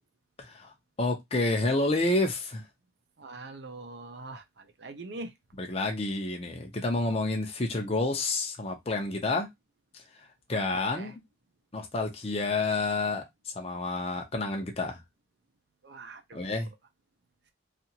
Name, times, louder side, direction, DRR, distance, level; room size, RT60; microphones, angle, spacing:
voice 1, 1.0-2.6 5.6-9.5 10.5-11.1 11.7-13.2 13.6-15.0 16.3-16.7, left 2 dB, 35° left, 0.6 m, -29 dB
voice 2, 3.2-5.3 10.5-11.2 15.8-16.7, right 2 dB, 60° right, 0.6 m, -43 dB
2.7 x 2.5 x 2.8 m
head